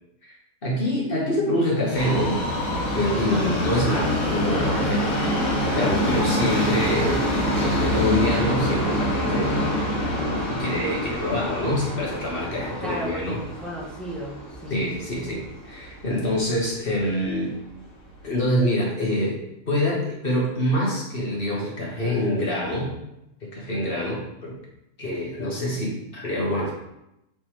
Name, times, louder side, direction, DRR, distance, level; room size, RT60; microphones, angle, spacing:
voice 1, 0.6-2.4 2.9-5.4 5.7-9.7 10.5-13.4 14.7-17.6 18.2-22.9 23.4-24.6 25.0-26.7, left 1 dB, 45° left, -3 dB, 1.7 m, -26 dB
Subway metro underground, 1.9-16.1 16.4-16.5 17.3-17.4 17.7-17.8 18.4-18.5, equal, 85° left, 2.2 m, -26 dB
voice 2, 3.2-3.6 12.8-14.9, right 1 dB, ahead, -3 dB, 1.1 m, -33 dB
7.1 x 4.2 x 3.3 m, 0.86 s
omnidirectional pair, 1.4 m